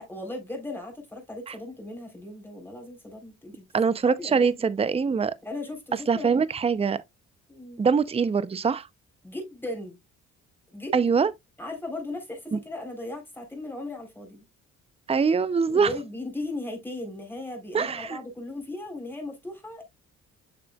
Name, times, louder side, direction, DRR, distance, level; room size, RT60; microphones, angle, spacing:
voice 1, 0.1-3.6 4.2-4.5 5.4-6.3 7.5-7.8 9.2-10.0 10.7-11.1 11.6-14.4 15.7-19.9, left 2 dB, 5° left, 3.7 m, -37 dB
voice 2, 3.7-5.3 6.1-7.0 7.8-8.9 10.9-11.3 12.5-12.6 15.1-15.9 17.7-18.2, right 5 dB, 20° right, 0.6 m, -23 dB
7.0 x 6.7 x 2.3 m
cardioid pair, 90°, 30 cm